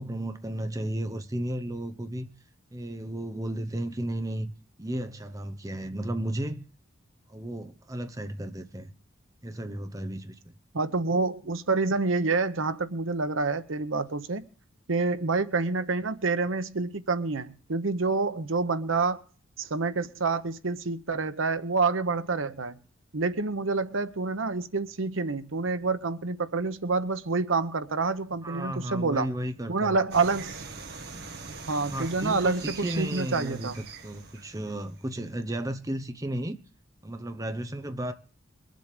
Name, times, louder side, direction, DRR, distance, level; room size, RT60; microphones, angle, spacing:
voice 1, 0.0-2.3 2.7-4.5 4.8-6.6 7.3-8.9 9.4-10.5 28.4-30.0 31.9-36.6 37.0-38.1, right 1 dB, 15° right, 0.9 m, -34 dB
voice 2, 10.7-14.4 14.9-19.2 19.6-22.8 23.1-29.3 29.7-30.7 31.7-33.8, right 3 dB, 80° right, 0.9 m, -28 dB
sound 1, 30.1-35.2, right 4 dB, 55° right, 1.7 m, -42 dB
22.5 x 7.7 x 5.1 m
head